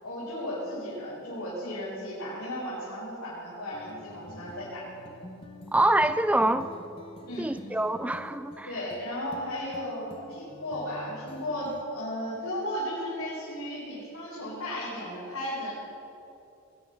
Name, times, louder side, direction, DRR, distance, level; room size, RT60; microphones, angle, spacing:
voice 1, 0.0-4.8 7.3-7.5 8.6-15.7, equal, 75° left, -8 dB, 4.3 m, -35 dB
sound 1, 3.7-11.8, left 1 dB, 25° left, 0.8 m, -47 dB
voice 2, 5.7-6.7 7.4-8.7, right 1 dB, 5° right, 12 dB, 0.4 m, -25 dB
20.0 x 9.4 x 6.6 m, 2.8 s
head